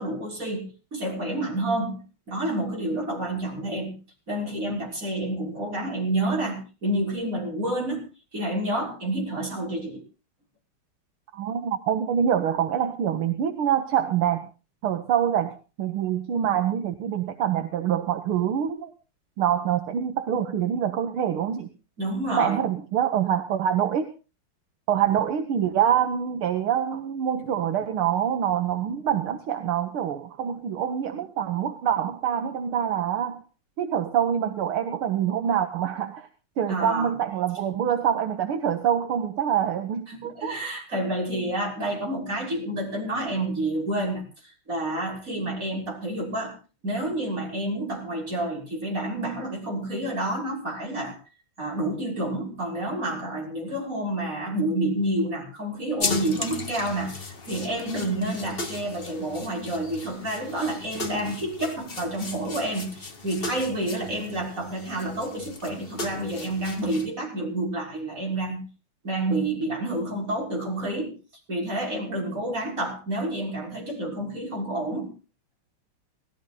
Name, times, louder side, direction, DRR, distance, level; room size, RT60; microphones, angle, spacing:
voice 1, 0.0-4.0 4.3-8.1 8.3-10.0 22.0-22.6 36.7-37.1 40.1-44.2 44.7-46.6 46.8-51.2 51.6-68.6 69.0-71.2 71.5-75.1, right 1 dB, 35° right, -1 dB, 6.6 m, -29 dB
voice 2, 11.3-14.5 14.8-18.9 19.4-21.7 22.3-24.1 24.9-33.4 33.8-36.3 36.6-40.6, right 9 dB, 75° right, 8 dB, 2.0 m, -25 dB
sound 1, 56.0-67.1, left 3 dB, 30° left, 1.7 m, -36 dB
18.5 x 15.0 x 4.0 m, 0.34 s
omnidirectional pair, 2.4 m